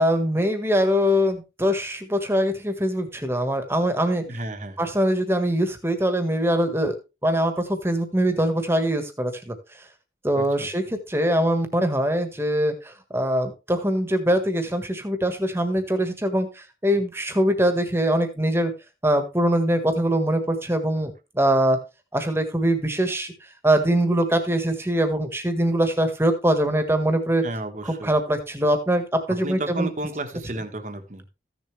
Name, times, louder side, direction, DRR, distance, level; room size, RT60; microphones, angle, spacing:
voice 1, 0.0-4.2 4.8-6.9 7.2-9.5 10.2-18.7 19.0-21.8 22.1-23.3 23.6-27.4 28.0-29.9, equal, 15° right, 1.5 m, -23 dB
voice 2, 4.2-4.8 10.4-10.7 21.0-21.1 27.4-28.1 29.3-31.3, right 2 dB, 45° right, 1.3 m, -33 dB
14.5 x 7.0 x 3.3 m
head